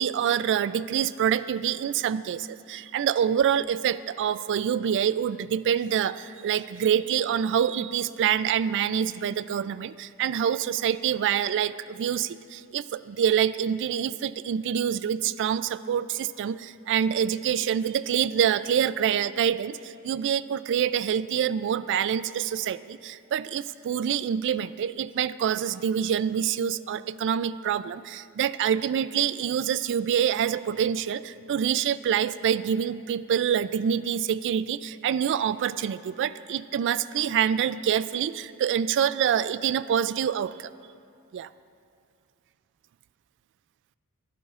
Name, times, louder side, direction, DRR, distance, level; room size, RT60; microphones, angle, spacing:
voice 1, 0.0-40.7 41.3-41.5, right 8 dB, 55° right, 15 dB, 0.3 m, -26 dB
23.0 x 11.0 x 2.5 m, 2.4 s
head